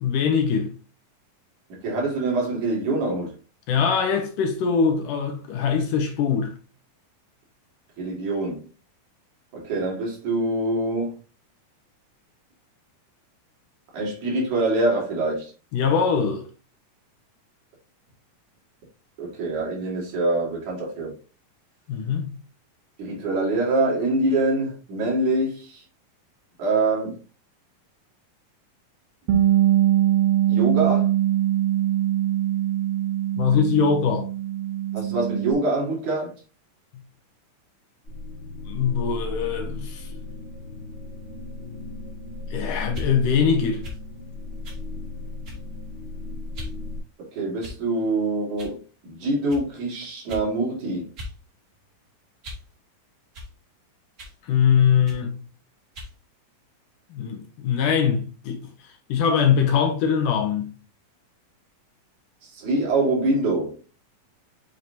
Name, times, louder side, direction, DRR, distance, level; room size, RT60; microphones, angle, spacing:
voice 1, 0.0-0.7 3.7-6.5 15.7-16.5 21.9-22.3 33.4-34.3 38.7-40.1 42.5-43.8 54.5-55.3 57.1-58.6 59.1-60.7, left 6 dB, 70° left, 2.5 m, -22 dB
voice 2, 1.7-3.4 8.0-8.7 9.5-11.1 13.9-15.5 19.2-21.1 23.0-25.8 26.6-27.2 30.5-31.1 34.9-36.3 47.3-48.8 49.0-51.1 62.4-63.8, right 2 dB, 60° right, 3.3 m, -25 dB
Bass guitar, 29.3-35.5, right 12 dB, 85° right, 1.2 m, -22 dB
sound 1, 38.0-47.0, left 2 dB, 30° left, 1.0 m, -35 dB
sound 2, 42.9-43.1 43.8-44.0 44.6-44.8 45.4-45.7 46.5-46.8 47.6-48.0 48.6-48.8 49.5-49.6 50.3-50.5 51.2-51.4 51.7-52.7 53.3-53.5 54.2-54.4 55.0-55.2 55.9-56.1, left 1 dB, 35° right, 1.7 m, -39 dB
7.5 x 5.1 x 2.6 m
omnidirectional pair, 4.1 m